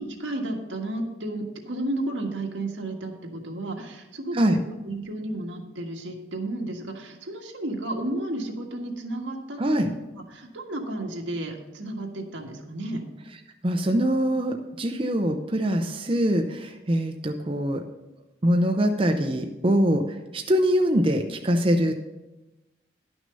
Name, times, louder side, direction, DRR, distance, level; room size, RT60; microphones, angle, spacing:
voice 1, 0.0-4.6 4.8-9.6 9.9-10.0 10.3-13.0, right 1 dB, 85° right, 1 dB, 1.6 m, -32 dB
voice 2, 13.6-17.8 18.4-20.0 20.3-21.9, equal, 30° right, 4 dB, 0.6 m, -23 dB
11.5 x 6.2 x 5.4 m, 1.0 s
head